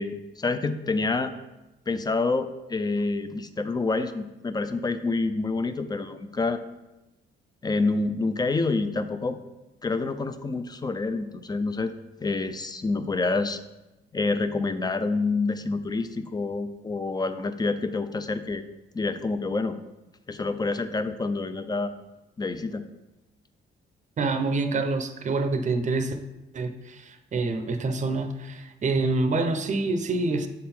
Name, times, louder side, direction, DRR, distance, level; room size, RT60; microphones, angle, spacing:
voice 1, 0.0-1.3 1.9-6.6 7.6-9.4 9.8-11.9 12.2-13.6 14.1-18.6 18.9-19.8 20.3-21.9 22.4-22.8, left 3 dB, 20° left, 10 dB, 0.5 m, -27 dB
voice 2, 24.2-26.2 26.5-30.5, right 3 dB, 35° right, 7 dB, 0.7 m, -26 dB
7.3 x 3.9 x 4.4 m, 1.0 s
cardioid pair, 90°, 20 cm